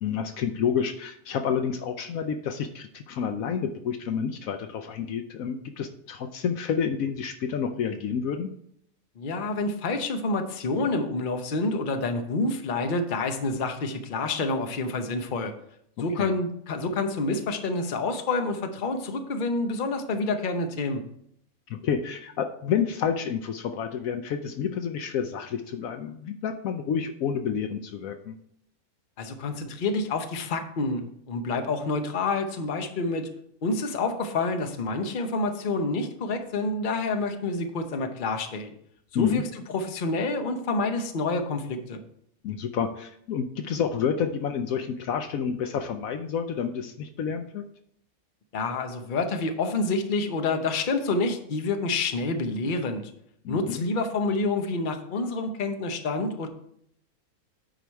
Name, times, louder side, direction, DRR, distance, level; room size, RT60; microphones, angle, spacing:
voice 1, 0.0-8.5 16.2-16.3 21.7-28.4 39.1-39.4 42.4-47.6 53.4-53.8, left 7 dB, 70° left, 7 dB, 1.0 m, -29 dB
voice 2, 9.2-15.5 16.0-21.0 29.2-33.3 33.6-38.7 39.1-39.4 39.7-42.0 48.5-53.1 53.5-56.5, left 3 dB, 40° left, 6 dB, 0.8 m, -28 dB
9.1 x 4.9 x 4.6 m, 0.71 s
omnidirectional pair, 1.6 m